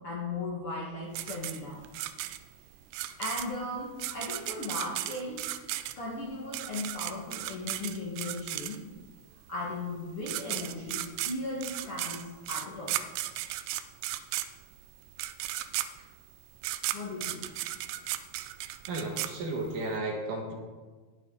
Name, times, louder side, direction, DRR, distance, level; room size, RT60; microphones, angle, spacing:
voice 1, 0.0-1.9 3.2-5.4 6.0-8.8 9.5-13.0 16.0-16.1 16.9-17.5, left 2 dB, 50° left, -5 dB, 1.7 m, -37 dB
sound 1, 1.2-9.1 9.9-10.0 10.2-19.9, right 15 dB, 85° right, 2.6 m, -35 dB
voice 2, 18.9-20.5, right 2 dB, 60° right, 1 dB, 2.8 m, -33 dB
19.5 x 7.3 x 3.9 m, 1.4 s
omnidirectional pair, 4.6 m